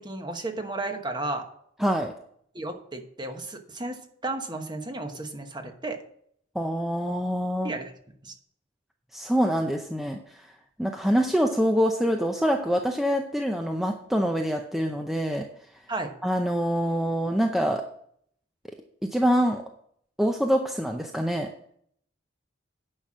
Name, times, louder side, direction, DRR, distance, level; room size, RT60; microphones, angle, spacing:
voice 1, 0.0-1.5 2.5-6.0 7.6-7.9 8.2-8.3 15.9-16.1, right 2 dB, 25° right, 6 dB, 1.1 m, -33 dB
voice 2, 1.8-2.1 6.5-7.7 9.1-10.2 10.8-15.4 16.2-17.8 19.1-19.6 20.2-21.5, equal, ahead, 3 dB, 0.6 m, -25 dB
10.0 x 5.9 x 6.2 m, 0.66 s
head